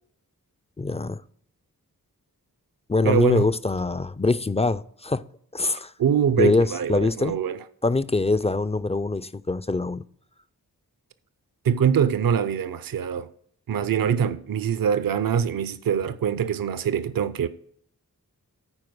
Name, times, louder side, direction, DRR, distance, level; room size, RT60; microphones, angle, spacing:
voice 1, 0.8-1.2 2.9-5.2 5.5-5.9 6.4-7.4 7.8-10.0, left 3 dB, 20° left, 0.3 m, -23 dB
voice 2, 3.0-3.5 6.0-7.6 11.6-13.3 13.7-17.5, right 8 dB, 65° right, 0.6 m, -24 dB
9.7 x 4.5 x 6.0 m
wide cardioid pair, 50°, 36 cm